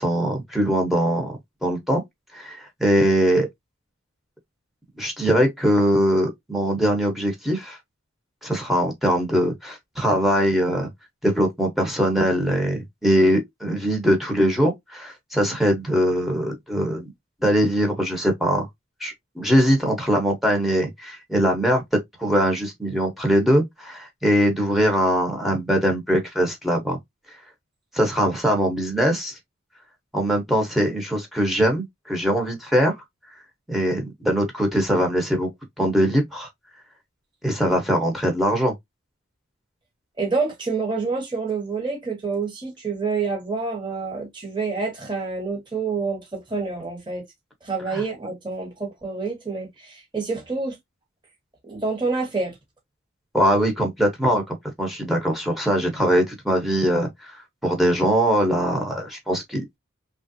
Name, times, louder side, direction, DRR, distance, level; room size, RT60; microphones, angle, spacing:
voice 1, 0.0-2.0 2.3-3.5 5.0-7.8 8.4-10.9 11.2-17.1 17.4-18.7 19.0-21.8 22.2-27.0 27.9-29.4 30.1-33.0 33.7-35.5 35.8-36.5 37.4-38.7 47.9-48.0 53.3-57.3 57.6-59.8, equal, ahead, 0.9 m, -22 dB
voice 2, 40.2-47.2 47.6-50.8 51.6-52.5, right 4 dB, 25° right, 1.2 m, -27 dB
3.2 x 2.5 x 2.6 m
head